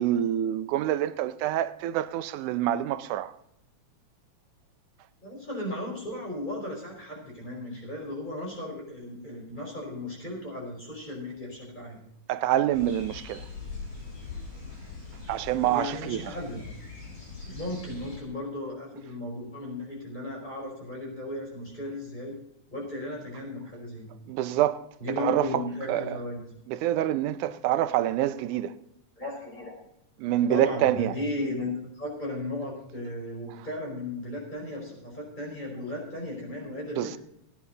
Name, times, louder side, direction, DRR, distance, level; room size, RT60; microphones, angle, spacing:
voice 1, 0.0-3.3 12.3-13.5 15.3-16.3 24.3-24.8 25.2-25.6 25.9-26.2 26.7-28.8 30.2-31.2 37.0-37.2, right 12 dB, 85° right, 2.2 m, -26 dB
voice 2, 5.2-12.0 15.6-16.6 17.5-22.4 22.7-24.1 25.0-26.4 29.2-29.7 30.5-37.2, left 1 dB, 15° left, 5.0 m, -35 dB
sound 1, 12.7-18.2, left 4 dB, 80° left, 8.0 m, -42 dB
17.0 x 9.9 x 4.0 m
omnidirectional pair, 3.5 m